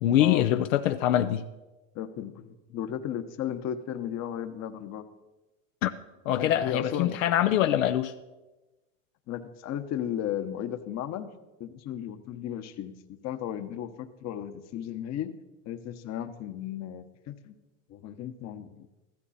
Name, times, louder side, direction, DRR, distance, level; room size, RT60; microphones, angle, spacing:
voice 1, 0.0-1.5 5.8-5.9 6.3-8.1, left 12 dB, 75° left, 0.8 m, -24 dB
voice 2, 1.9-5.0 6.4-7.2 9.3-11.3 11.6-15.3 15.6-17.5 17.9-18.9, left 10 dB, 40° left, 1.2 m, -35 dB
15.0 x 13.0 x 4.2 m
hypercardioid pair, 105°, 39 cm